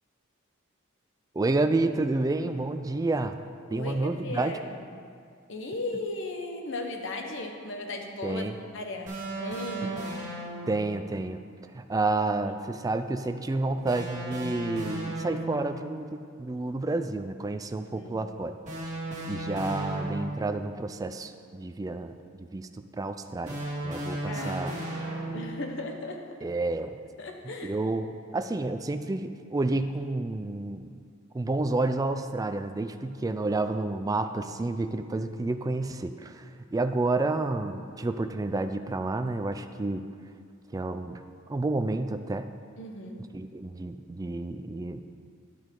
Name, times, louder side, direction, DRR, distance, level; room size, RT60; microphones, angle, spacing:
voice 1, 1.4-3.4 3.7-4.5 8.2-8.6 9.8-9.9 10.7-11.4 11.7-18.6 19.3-22.2 22.5-22.7 23.0-24.7 26.4-26.9 27.6-30.9 31.3-36.4 36.7-40.0 40.7-41.2 41.5-42.5 43.3-45.0, right 2 dB, 15° right, 8 dB, 0.3 m, -30 dB
voice 2, 3.7-4.8 5.5-8.4 8.7-10.0 17.9-18.2 24.2-26.2 27.2-27.8 42.8-43.2, left 2 dB, 65° left, 3 dB, 1.0 m, -37 dB
sound 1, 9.1-10.9 13.9-15.7 18.6-20.6 23.5-25.7, right 1 dB, 35° right, 2.2 m, -35 dB
10.5 x 9.1 x 3.8 m, 2.2 s
head